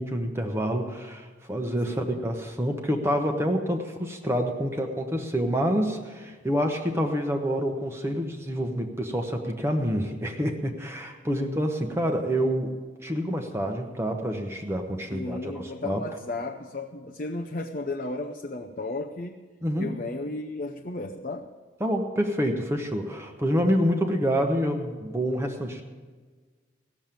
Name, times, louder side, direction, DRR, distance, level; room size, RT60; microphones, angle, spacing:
voice 1, 0.0-16.0 19.6-20.0 21.8-25.8, equal, 15° right, 3 dB, 0.9 m, -27 dB
voice 2, 1.9-2.2 15.1-19.5 19.8-21.5, left 2 dB, 45° left, 1 dB, 0.6 m, -34 dB
17.0 x 7.2 x 8.9 m, 1.4 s
head